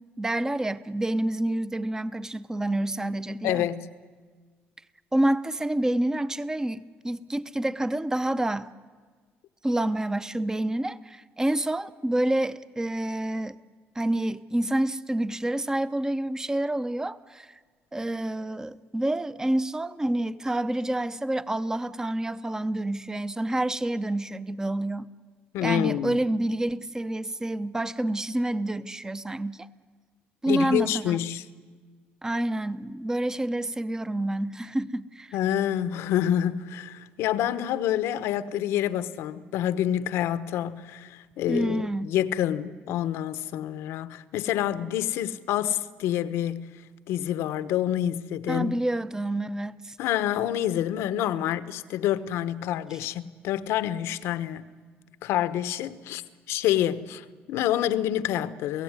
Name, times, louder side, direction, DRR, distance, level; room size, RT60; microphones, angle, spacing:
voice 1, 0.0-3.7 5.1-8.7 9.6-13.6 14.0-17.5 17.9-25.1 25.6-29.7 30.4-31.2 32.2-35.4 41.5-42.1 48.5-50.0, right 1 dB, 15° right, 0.9 m, -28 dB
voice 2, 3.4-3.9 25.5-26.2 30.4-31.4 35.3-46.7 47.1-48.7 50.0-54.6 55.2-56.2 56.5-58.8, left 11 dB, 85° left, 1.0 m, -27 dB
29.0 x 17.0 x 9.7 m
cardioid pair, 95°, 4 cm